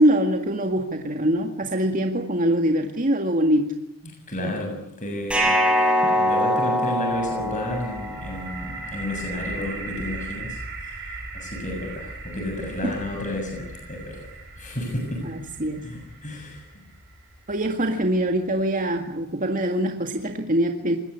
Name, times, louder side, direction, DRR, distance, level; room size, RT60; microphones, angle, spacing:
voice 1, 0.0-3.7 12.8-13.0 15.2-15.9 17.5-21.0, right 1 dB, 40° right, 4 dB, 2.0 m, -23 dB
voice 2, 4.3-5.6 6.0-10.6 10.9-14.2 14.6-15.2 15.8-16.6, left 1 dB, 35° left, 2 dB, 7.0 m, -31 dB
sound 1, 5.3-8.4, left 1 dB, 5° right, 7.1 m, -22 dB
sound 2, 7.1-18.9, right 3 dB, 55° right, 7.5 m, -39 dB
26.0 x 21.0 x 8.3 m, 0.76 s
head